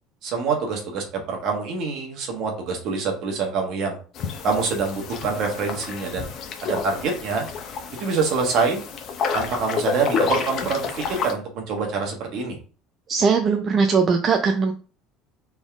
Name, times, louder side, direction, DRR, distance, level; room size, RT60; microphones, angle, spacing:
voice 1, 0.2-4.0 4.4-6.3 6.6-7.4 8.0-8.8 9.3-12.6, right 4 dB, 45° right, 2 dB, 1.4 m, -25 dB
sound 1, 4.2-11.3, left 6 dB, 40° left, 0.7 m, -29 dB
voice 2, 13.1-14.7, right 5 dB, 25° right, 4 dB, 0.4 m, -20 dB
4.1 x 3.6 x 3.5 m, 0.38 s
cardioid pair, 165°, 0 cm